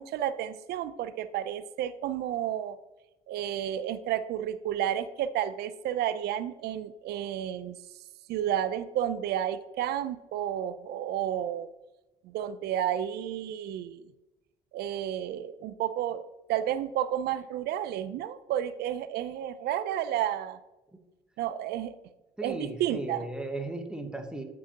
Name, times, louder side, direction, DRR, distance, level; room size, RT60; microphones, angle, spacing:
voice 1, 0.0-2.8 3.3-7.8 8.3-11.7 12.2-14.1 14.7-16.2 16.5-20.6 21.4-21.9 22.4-23.3, right 11 dB, 70° right, 13 dB, 0.4 m, -31 dB
voice 2, 22.4-24.4, right 2 dB, 5° right, 5 dB, 1.0 m, -36 dB
9.3 x 6.1 x 2.8 m, 1.0 s
cardioid pair, 110°, 17 cm